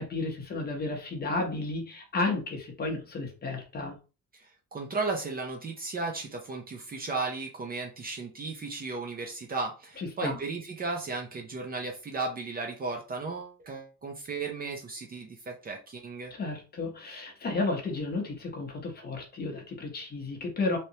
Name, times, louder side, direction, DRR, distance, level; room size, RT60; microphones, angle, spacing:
voice 1, 0.0-4.0 10.0-10.4 16.3-20.8, left 3 dB, 30° left, 2 dB, 0.9 m, -32 dB
voice 2, 4.3-16.3, right 3 dB, 30° right, 2 dB, 0.5 m, -35 dB
3.3 x 2.9 x 2.7 m, 0.32 s
cardioid pair, 170°, 32 cm